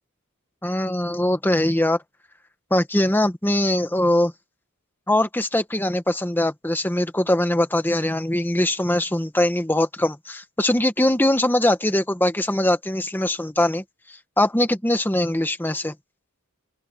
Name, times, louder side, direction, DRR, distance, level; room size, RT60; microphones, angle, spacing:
voice 1, 0.6-2.0 2.7-4.3 5.1-15.9, left 1 dB, 10° left, 1.0 m, -22 dB
open air
head